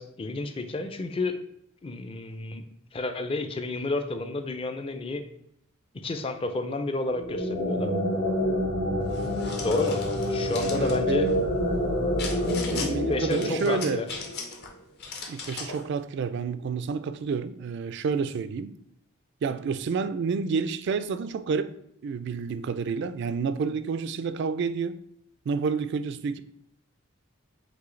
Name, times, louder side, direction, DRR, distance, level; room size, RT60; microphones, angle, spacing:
voice 1, 0.0-1.4 1.8-2.6 2.9-5.3 5.9-8.0 9.6-10.0 10.3-11.3 12.8-14.1, left 2 dB, 25° left, 0.4 m, -30 dB
sound 1, 7.1-14.5, left 1 dB, 80° left, 1.4 m, -27 dB
sound 2, 9.1-11.0 12.2-12.9 13.3-14.7 15.0-15.8, left 4 dB, 50° left, 0.8 m, -38 dB
voice 2, 10.7-11.4 12.7-14.0 15.3-18.8 19.4-21.7 22.0-25.0 25.5-26.4, right 5 dB, 55° right, 0.3 m, -29 dB
6.0 x 2.8 x 3.1 m
head